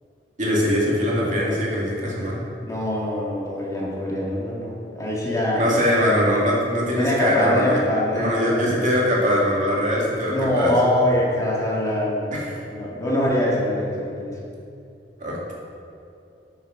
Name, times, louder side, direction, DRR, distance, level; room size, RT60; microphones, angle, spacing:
voice 1, 0.4-2.4 5.5-7.8 8.1-10.7 12.3-12.4 15.2-15.5, equal, 45° right, -5 dB, 2.3 m, -22 dB
voice 2, 2.6-5.7 7.0-8.9 10.3-14.3, left 1 dB, 20° left, -4 dB, 1.7 m, -24 dB
8.9 x 6.4 x 6.3 m, 2.6 s
head